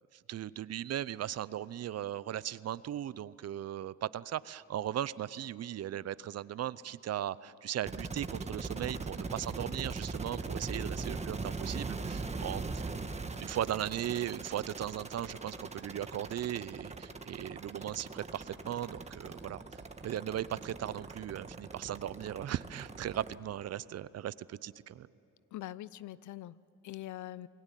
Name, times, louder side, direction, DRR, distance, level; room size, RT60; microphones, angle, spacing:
voice 1, 0.3-12.8 13.4-19.6 20.0-25.1, right 11 dB, 55° right, 18 dB, 0.7 m, -37 dB
sound 1, 7.9-23.3, right 3 dB, 20° right, 1.5 m, -40 dB
voice 2, 25.5-27.5, left 14 dB, 75° left, 19 dB, 0.7 m, -43 dB
28.0 x 21.0 x 9.1 m, 3.0 s
cardioid pair, 90°, 30 cm